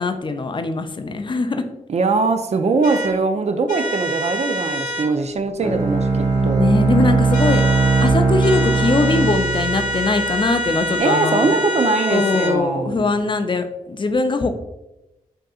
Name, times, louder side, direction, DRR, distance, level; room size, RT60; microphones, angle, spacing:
voice 1, 0.0-1.6 6.4-7.6 8.0-11.5 12.1-14.5, left 3 dB, 35° left, 7 dB, 0.4 m, -21 dB
voice 2, 1.9-6.7 11.0-13.2, right 3 dB, 50° right, 8 dB, 0.4 m, -21 dB
sound 1, 2.8-3.1 3.7-5.1 7.3-8.1 8.4-12.6, equal, 65° left, 0.9 m, -26 dB
Bowed string instrument, 5.6-10.6, right 3 dB, 70° right, 0.9 m, -19 dB
3.6 x 2.7 x 2.4 m, 0.93 s
cardioid pair, 45°, 14 cm